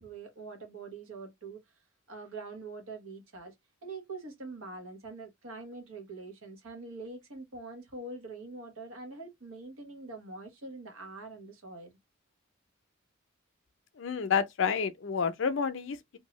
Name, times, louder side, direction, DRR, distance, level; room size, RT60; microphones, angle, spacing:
voice 1, 0.0-1.6 2.1-3.5 3.8-11.9, right 3 dB, 90° right, 1.1 m, -44 dB
voice 2, 14.0-16.2, left 6 dB, 60° left, 0.5 m, -29 dB
2.7 x 2.2 x 3.0 m
head